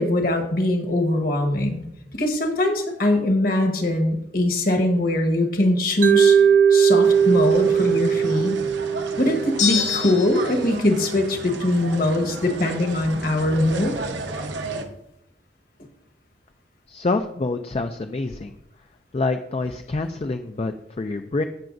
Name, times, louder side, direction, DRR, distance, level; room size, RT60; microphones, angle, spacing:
voice 1, 0.0-1.8 2.1-6.4 6.7-8.6 9.2-13.9, left 1 dB, 50° left, 4 dB, 1.3 m, -22 dB
Mallet percussion, 6.0-10.1, right 7 dB, 45° right, 0.4 m, -19 dB
sound 1, 7.0-14.8, right 2 dB, 75° right, 1.0 m, -34 dB
sound 2, 9.6-10.6, left 8 dB, 70° left, 2.0 m, -25 dB
voice 2, 16.9-18.5 19.1-21.4, left 3 dB, 35° left, 7 dB, 0.4 m, -26 dB
15.0 x 5.8 x 2.6 m, 0.80 s
head